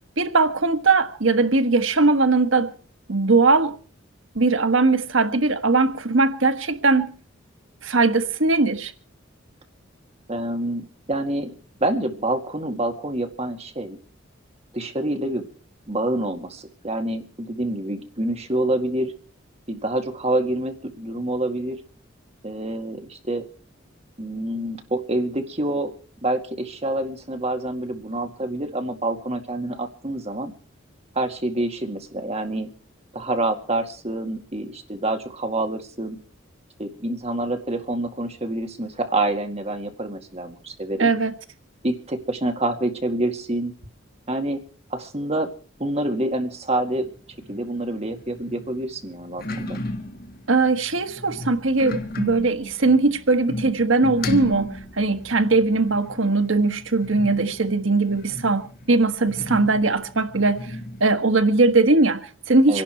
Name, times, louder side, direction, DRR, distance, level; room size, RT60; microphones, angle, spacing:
voice 1, 0.2-2.7 3.1-3.7 4.3-7.1 7.8-8.9 41.0-41.3 50.5-60.7 61.0-62.8, right 3 dB, 80° right, 1.5 m, -20 dB
voice 2, 10.3-11.5 11.8-14.0 14.7-15.5 15.9-19.1 19.7-21.8 22.4-23.4 24.2-25.9 26.2-30.5 31.2-32.7 33.1-36.2 36.8-41.1 41.8-43.7 44.3-44.6 44.9-45.5 45.8-47.1 47.5-49.8 62.7-62.8, right 1 dB, 30° right, 2.1 m, -27 dB
sound 1, 46.9-61.1, left 1 dB, 50° left, 1.7 m, -35 dB
26.5 x 11.5 x 4.5 m
head